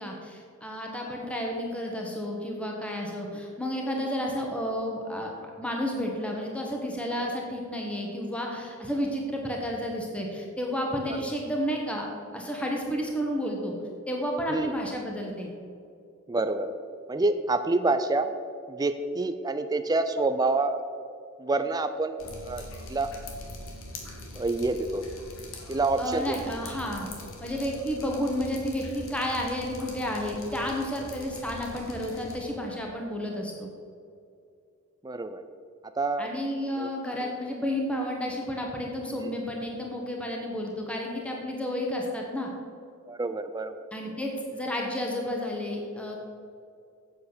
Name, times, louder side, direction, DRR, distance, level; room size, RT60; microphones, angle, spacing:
voice 1, 0.0-12.1 12.3-13.7 14.1-15.5 26.0-27.1 27.4-33.7 36.2-42.5 43.9-46.2, equal, 5° left, 0 dB, 1.2 m, -31 dB
voice 2, 16.3-16.8 17.1-18.3 18.7-20.8 21.4-22.6 22.9-23.1 24.4-25.1 25.7-26.4 35.0-35.4 36.0-36.3 36.8-36.9 37.2-37.3 39.2-39.3 43.1-43.9, right 2 dB, 20° right, 9 dB, 0.4 m, -27 dB
Drip, 22.2-32.4, left 1 dB, 65° left, 1.8 m, -43 dB
8.1 x 7.4 x 6.7 m, 2.4 s
head